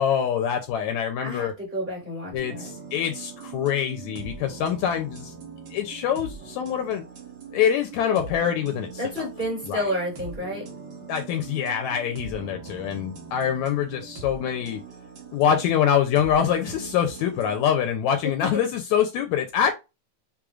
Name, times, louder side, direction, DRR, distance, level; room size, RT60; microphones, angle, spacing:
voice 1, 0.0-1.5 2.3-5.3 5.7-7.0 7.5-9.0 9.6-9.9 11.1-14.8 15.3-19.7, left 8 dB, 75° left, 1.8 m, -25 dB
voice 2, 1.2-2.7 9.0-10.7, equal, 20° right, 2.0 m, -30 dB
sound 1, 2.3-17.8, right 5 dB, 65° right, 1.0 m, -41 dB
6.2 x 3.2 x 2.4 m
omnidirectional pair, 3.6 m